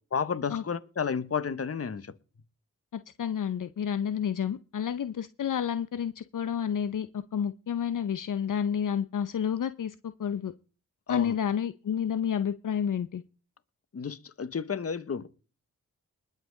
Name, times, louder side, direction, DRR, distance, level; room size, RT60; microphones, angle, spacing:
voice 1, 0.1-2.1 11.1-11.3 13.9-15.3, left 6 dB, 45° left, 1.1 m, -31 dB
voice 2, 2.9-10.5 11.1-13.2, left 8 dB, 65° left, 0.7 m, -30 dB
20.5 x 7.3 x 3.9 m
cardioid pair, 60°, 34 cm